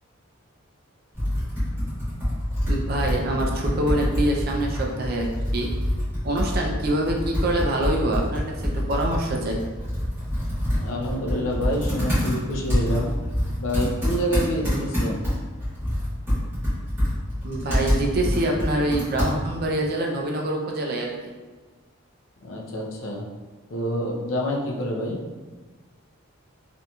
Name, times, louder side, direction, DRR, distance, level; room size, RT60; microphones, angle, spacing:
Computer keyboard, 1.1-19.7, equal, 10° right, 1.1 m, -26 dB
voice 1, 2.7-5.7 6.2-9.6 17.4-21.1, right 1 dB, 45° right, 0 dB, 0.4 m, -25 dB
voice 2, 10.8-13.1 13.6-15.2 22.4-23.3 23.7-25.2, equal, 70° left, -1 dB, 0.5 m, -27 dB
2.8 x 2.5 x 2.2 m, 1.3 s
head